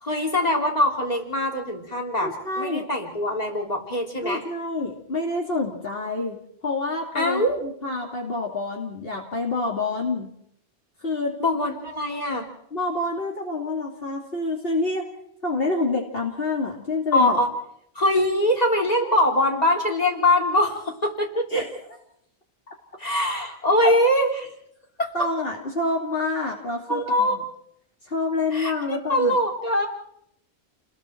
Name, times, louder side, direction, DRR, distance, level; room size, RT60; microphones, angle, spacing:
voice 1, 0.0-4.4 7.1-7.6 11.4-12.5 17.1-17.5 18.0-21.5 23.0-24.5 25.0-25.1 26.9-27.4 28.5-29.9, left 1 dB, 35° left, 1 dB, 3.8 m, -23 dB
voice 2, 2.2-2.9 4.2-6.4 6.6-10.3 11.0-11.3 12.7-15.0 15.4-17.4 21.5-21.7 23.8-23.9 25.1-27.4 28.1-29.4, left 2 dB, 60° left, -1 dB, 2.9 m, -27 dB
30.0 x 20.5 x 4.6 m, 0.71 s
omnidirectional pair, 1.1 m